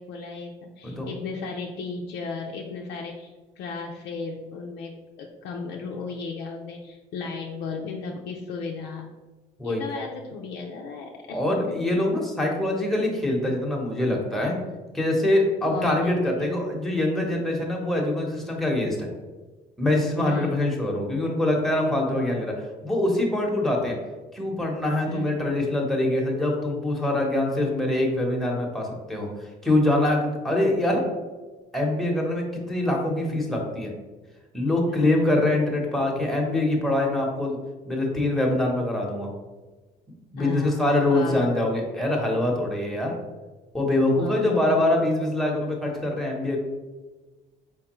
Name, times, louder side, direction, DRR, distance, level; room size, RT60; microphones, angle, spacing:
voice 1, 0.0-3.3 3.6-9.1 9.6-11.4 11.7-11.8 15.7-16.5 20.2-20.6 25.1-25.3 34.9-35.4 40.4-41.4 44.1-45.2, left 4 dB, 80° left, -1 dB, 0.5 m, -35 dB
voice 2, 11.3-14.6 14.9-19.1 19.8-22.5 22.8-24.0 24.3-31.0 31.7-33.9 34.5-37.6 37.9-39.3 40.3-43.2 43.7-46.6, left 1 dB, ahead, -1 dB, 1.0 m, -24 dB
4.5 x 3.4 x 3.0 m, 1.3 s
cardioid pair, 110°, 17 cm